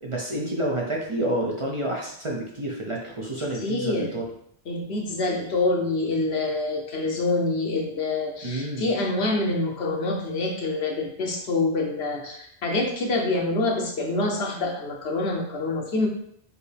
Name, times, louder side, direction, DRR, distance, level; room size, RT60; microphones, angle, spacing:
voice 1, 0.0-4.2 8.4-8.9, right 1 dB, 35° right, -2 dB, 0.6 m, -29 dB
voice 2, 3.6-4.1 4.7-16.1, left 2 dB, 75° left, 1 dB, 1.0 m, -26 dB
4.6 x 2.7 x 3.3 m, 0.69 s
omnidirectional pair, 1.1 m